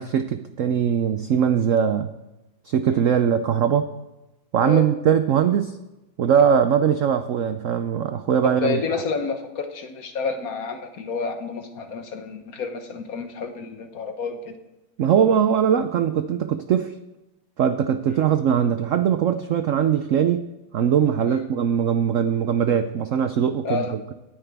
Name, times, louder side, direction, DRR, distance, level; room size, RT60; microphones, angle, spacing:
voice 1, 0.0-2.1 2.7-3.9 4.5-5.8 6.2-8.8 15.0-16.9 17.6-20.5 20.7-24.1, right 8 dB, 75° right, 9 dB, 0.7 m, -21 dB
voice 2, 8.4-14.6 18.1-18.3 21.3-21.5 23.6-24.0, left 5 dB, 55° left, 7 dB, 1.3 m, -29 dB
18.0 x 9.7 x 3.5 m, 0.99 s
omnidirectional pair, 2.0 m